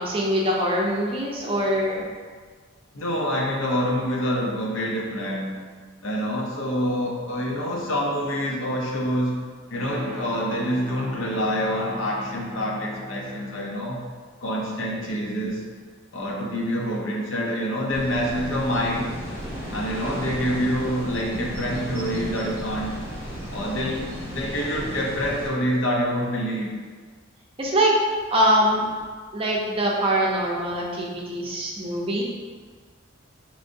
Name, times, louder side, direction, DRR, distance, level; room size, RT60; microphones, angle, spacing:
voice 1, 0.0-2.1 27.6-27.9 28.3-28.9 29.3-32.2, right 1 dB, 25° right, -2 dB, 0.6 m, -23 dB
voice 2, 2.9-5.6 6.0-9.4 9.7-14.0 14.4-15.6 16.1-19.2 19.7-23.0 23.5-26.7, equal, 70° left, -2 dB, 0.7 m, -26 dB
sound 1, 9.7-13.7, equal, 10° right, 1.4 m, -38 dB
sound 2, 17.9-25.5, equal, 10° left, 1.1 m, -34 dB
4.9 x 3.2 x 2.6 m, 1.5 s
head